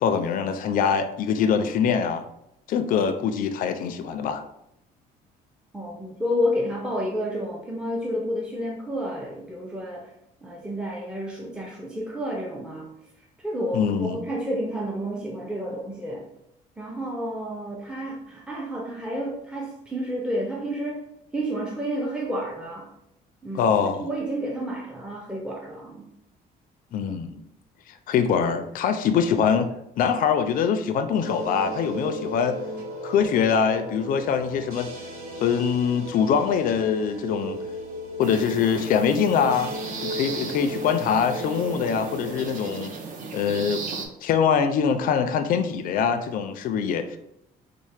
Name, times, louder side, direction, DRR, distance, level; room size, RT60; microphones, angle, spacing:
voice 1, 0.0-2.2 2.7-4.4 13.7-14.2 23.6-24.1 26.9-27.4 28.1-29.7 30.0-32.6 33.0-34.9 35.4-37.6 38.2-39.8 40.0-42.9 43.3-43.8 44.2-47.2, left 7 dB, 55° left, 8 dB, 0.4 m, -23 dB
voice 2, 5.7-10.1 10.4-12.9 13.4-16.3 16.8-21.1 21.3-22.9 23.4-26.1, equal, 5° right, -2 dB, 0.5 m, -30 dB
sound 1, 31.2-42.5, equal, 65° right, 1.4 m, -36 dB
sound 2, 38.2-44.1, right 4 dB, 50° right, 0.6 m, -36 dB
4.1 x 2.1 x 3.2 m, 0.80 s
cardioid pair, 110°, 17 cm